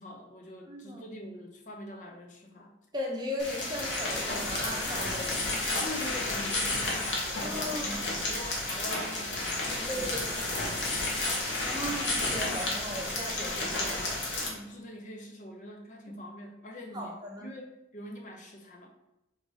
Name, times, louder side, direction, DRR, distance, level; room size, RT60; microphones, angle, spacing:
voice 1, 0.0-2.7 5.8-10.2 14.4-18.9, left 1 dB, 40° left, 2 dB, 0.5 m, -44 dB
voice 2, 0.7-1.0 2.9-5.5 7.4-8.0 9.9-10.4 11.6-14.2 16.9-17.5, equal, 25° right, -1 dB, 0.8 m, -37 dB
sound 1, 3.4-14.5, left 2 dB, 80° left, 1.1 m, -31 dB
3.9 x 2.6 x 4.7 m, 0.87 s
head